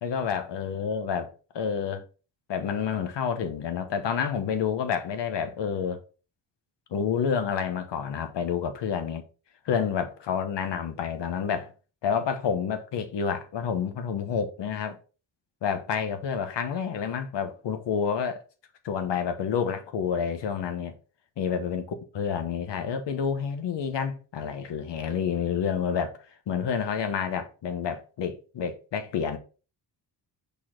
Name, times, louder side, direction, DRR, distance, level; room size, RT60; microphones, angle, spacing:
voice 1, 0.0-2.0 2.5-6.0 6.9-9.2 9.6-11.7 12.0-15.0 15.6-18.4 18.8-20.9 21.4-26.2 26.5-29.4, left 7 dB, 85° left, 1.2 m, -29 dB
5.6 x 4.3 x 4.4 m
wide cardioid pair, 135°, 42 cm